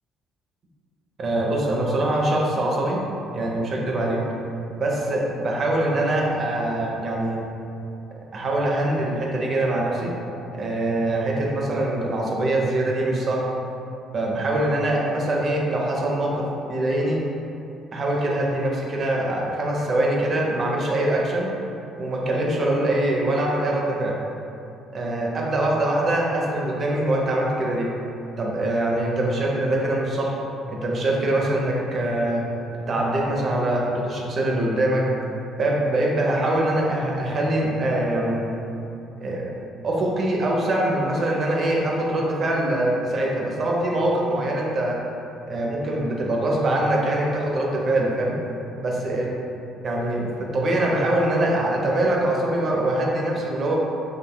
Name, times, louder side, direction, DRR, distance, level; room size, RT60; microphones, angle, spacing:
voice 1, 1.2-3.0 3.3-4.2 4.8-7.4 8.3-10.1 10.5-13.4 14.1-17.2 17.9-21.5 22.0-24.1 24.9-27.9 28.4-30.3 30.7-32.4 32.9-35.0 35.6-38.5 39.2-39.5 39.8-45.0 45.5-48.4 48.8-49.3 49.8-53.8, right 1 dB, 40° right, -2 dB, 0.7 m, -23 dB
5.9 x 2.6 x 2.3 m, 2.8 s
figure-of-eight pair, 50°, 0 cm